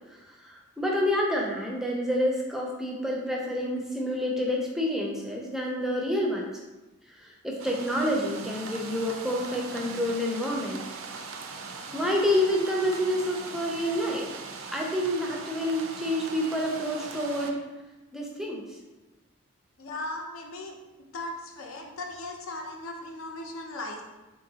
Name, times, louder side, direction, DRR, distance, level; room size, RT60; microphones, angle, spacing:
voice 1, 0.1-6.5 7.1-10.8 11.9-14.3 14.7-17.6 18.1-18.6, left 1 dB, ahead, -2 dB, 0.4 m, -28 dB
sound 1, 7.6-17.5, right 4 dB, 65° right, 0.4 m, -40 dB
voice 2, 19.8-20.8 21.1-24.0, left 2 dB, 65° left, 2 dB, 0.6 m, -37 dB
3.7 x 3.4 x 2.8 m, 1.1 s
head